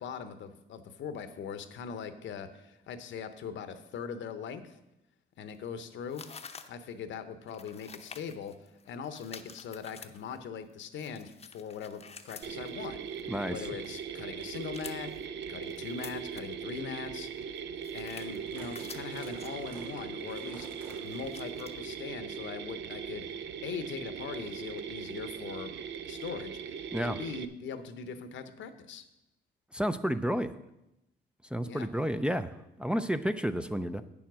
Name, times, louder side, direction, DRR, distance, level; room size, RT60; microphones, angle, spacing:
voice 1, 0.0-4.8 5.4-6.2 6.7-13.0 13.5-17.3 17.9-20.7 21.0-23.3 23.6-25.7 26.1-29.0 31.6-31.9, left 6 dB, 70° left, 11 dB, 0.9 m, -41 dB
sound 1, 5.5-5.7 6.1-6.9 7.4-10.4 10.8-14.2 14.6-15.2 15.7-16.6 16.9-17.0 17.3-18.4 18.7-19.5 19.8-20.0 20.3-21.8, left 5 dB, 30° left, 0.7 m, -49 dB
sound 2, 8.8-9.0 9.6-9.7 10.0-10.3 11.4-11.5 12.1-12.7 13.4-13.6 14.2-14.4 15.0-15.1 15.8-16.0 16.5-16.6 17.0-17.1 17.3-17.6 17.9-21.5 21.8-21.9 22.7-22.8, right 2 dB, 90° right, 2.3 m, -52 dB
Mechanisms, 12.4-27.5, right 7 dB, 65° right, 0.6 m, -40 dB
voice 2, 13.3-13.6 26.9-27.2 29.7-30.6 31.5-34.0, equal, 5° right, 8 dB, 0.4 m, -31 dB
8.7 x 7.1 x 6.1 m, 0.89 s
cardioid pair, 90°, 20 cm